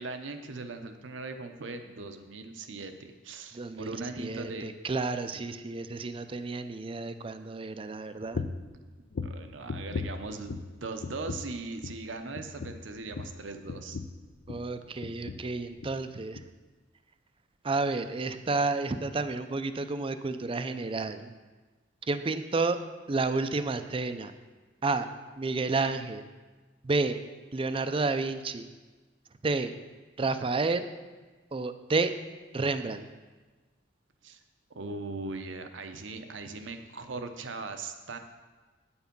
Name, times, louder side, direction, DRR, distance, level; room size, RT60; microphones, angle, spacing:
voice 1, 0.0-4.7 5.3-5.5 9.2-10.5 10.8-14.0 34.2-34.4 34.7-38.2, right 3 dB, 75° right, 7 dB, 0.8 m, -39 dB
voice 2, 3.5-8.4 14.5-16.4 17.6-21.3 22.1-22.8 23.1-24.3 24.8-25.1 25.4-26.2 26.8-27.2 27.5-28.7 29.4-29.8 30.2-30.9 31.5-32.1 32.5-33.0, right 3 dB, 30° right, 10 dB, 0.5 m, -30 dB
sound 1, 8.3-8.7 9.1-10.7 11.0-11.6 11.8-12.1 12.3-14.7 15.0-15.5 15.8-16.0 16.3-16.5, left 4 dB, 55° left, 0.5 m, -37 dB
9.0 x 7.1 x 5.3 m, 1.3 s
head